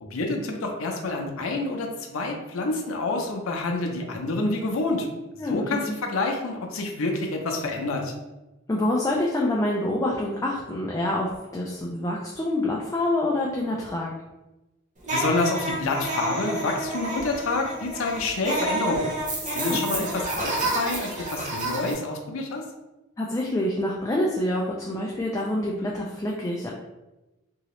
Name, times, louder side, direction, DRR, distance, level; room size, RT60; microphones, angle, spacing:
voice 1, 0.0-5.1 5.4-8.1 15.1-19.0 19.5-22.6, left 2 dB, 80° left, 2 dB, 0.6 m, -28 dB
voice 2, 5.4-6.0 8.7-14.1 19.6-20.0 23.2-26.7, left 1 dB, 15° left, -3 dB, 0.3 m, -27 dB
sound 1, 15.0-21.9, right 2 dB, 35° right, 0.7 m, -30 dB
2.8 x 2.7 x 3.0 m, 1.0 s
head